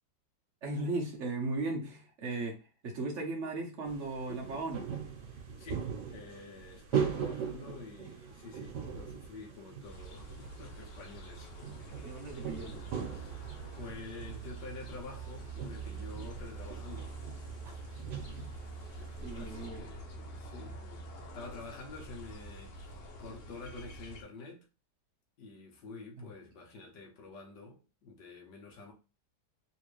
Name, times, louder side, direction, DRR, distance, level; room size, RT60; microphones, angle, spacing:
voice 1, 0.6-4.9 12.0-12.9 17.6-17.9 18.4-18.5 19.2-19.9, right 2 dB, 50° right, 1.1 m, -37 dB
sound 1, 3.8-19.7, right 7 dB, 75° right, 1.5 m, -41 dB
voice 2, 5.3-11.5 13.1-13.4 13.7-17.1 19.3-24.7 25.4-28.9, left 3 dB, 85° left, 1.6 m, -48 dB
sound 2, 9.8-24.2, right 3 dB, 65° left, 1.3 m, -45 dB
3.4 x 3.1 x 3.1 m
omnidirectional pair, 1.8 m